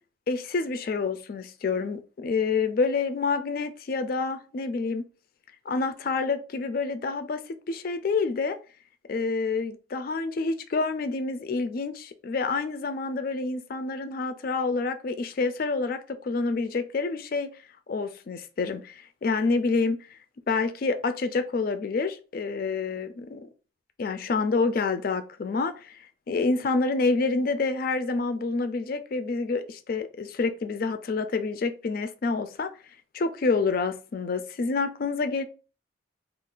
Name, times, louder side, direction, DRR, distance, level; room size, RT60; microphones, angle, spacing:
voice 1, 0.3-5.0 5.7-7.4 7.7-8.6 9.1-17.5 17.9-20.1 20.5-23.5 24.0-32.7 33.1-35.4, left 4 dB, 45° left, 0.3 m, -28 dB
2.4 x 2.3 x 3.7 m
head